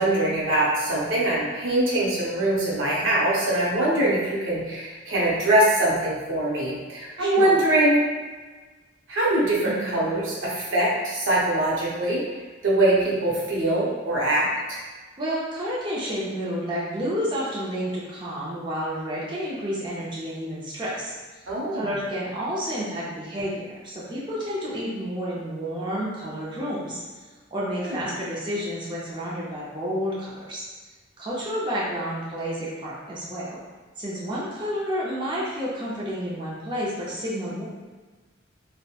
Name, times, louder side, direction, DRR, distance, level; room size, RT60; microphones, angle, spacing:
voice 1, 0.0-8.0 9.1-12.2 12.6-14.8 21.5-21.9 27.8-28.0, right 1 dB, 85° right, -5 dB, 0.7 m, -23 dB
voice 2, 7.2-7.5 9.6-9.9 15.2-21.1 21.7-27.0 27.5-30.6 31.2-33.6 34.0-37.6, equal, 25° right, -7 dB, 0.5 m, -30 dB
2.9 x 2.1 x 2.3 m, 1.3 s
head